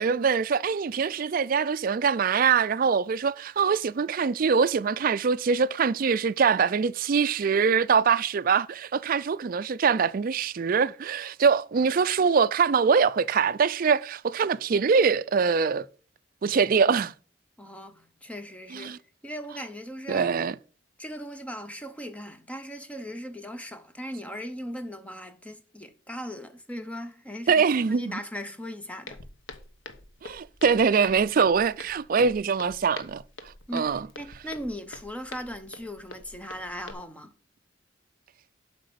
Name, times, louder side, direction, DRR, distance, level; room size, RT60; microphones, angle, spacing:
voice 1, 0.0-15.8 16.4-17.1 18.7-19.0 20.1-20.5 27.5-28.2 30.2-33.2 33.7-34.0, right 6 dB, 45° right, 0.4 m, -23 dB
voice 2, 17.6-18.9 19.2-20.3 21.0-29.2 33.7-37.3, equal, 5° left, 0.7 m, -38 dB
Walk footsteps, 29.1-36.9, left 3 dB, 75° left, 1.0 m, -45 dB
7.8 x 4.9 x 6.7 m
head